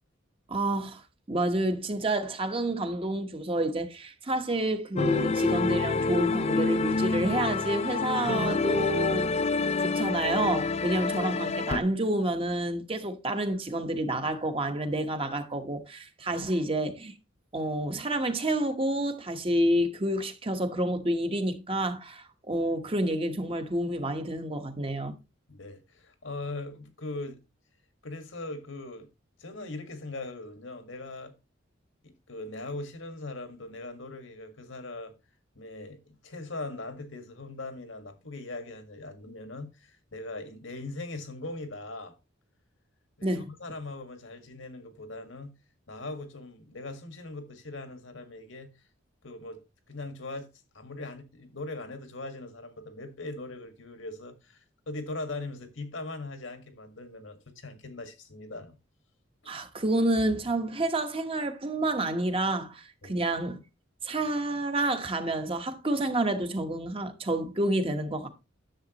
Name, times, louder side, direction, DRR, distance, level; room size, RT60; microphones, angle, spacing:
voice 1, 0.5-1.0 1.3-9.3 9.8-17.1 17.5-25.1 43.2-43.5 59.5-63.6 64.0-68.3, right 1 dB, 30° right, 1.1 m, -29 dB
sound 1, 5.0-11.8, left 3 dB, 35° left, 0.4 m, -27 dB
voice 2, 25.5-27.4 28.0-29.1 29.4-31.3 32.0-35.1 35.6-42.1 43.2-45.5 45.9-48.7 49.2-49.6 49.9-50.5 50.7-58.8 63.0-63.2, left 2 dB, 80° left, 1.8 m, -40 dB
10.5 x 7.3 x 3.0 m
head